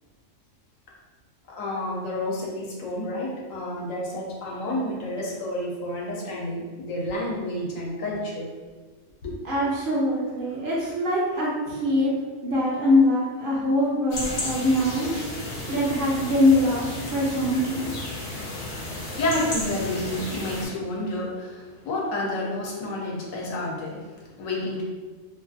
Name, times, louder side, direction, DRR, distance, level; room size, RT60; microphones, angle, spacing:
voice 1, 1.5-8.5 9.2-9.4 18.7-24.8, left 1 dB, 85° left, -3 dB, 1.0 m, -30 dB
voice 2, 9.4-12.2 12.4-15.3 15.7-17.9, left 1 dB, 60° right, -5 dB, 0.6 m, -23 dB
sound 1, 14.1-20.7, left 2 dB, 55° left, 0.6 m, -33 dB
2.5 x 2.4 x 2.5 m, 1.4 s
omnidirectional pair, 1.3 m